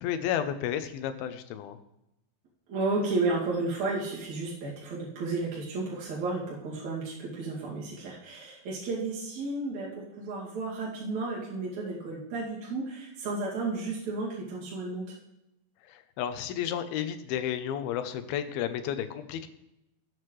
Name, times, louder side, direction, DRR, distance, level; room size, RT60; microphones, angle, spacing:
voice 1, 0.0-1.8 15.8-19.5, left 10 dB, 85° left, 9 dB, 2.7 m, -32 dB
voice 2, 2.7-15.1, right 3 dB, 55° right, -6 dB, 3.5 m, -32 dB
18.5 x 7.9 x 3.2 m, 0.88 s
omnidirectional pair, 4.2 m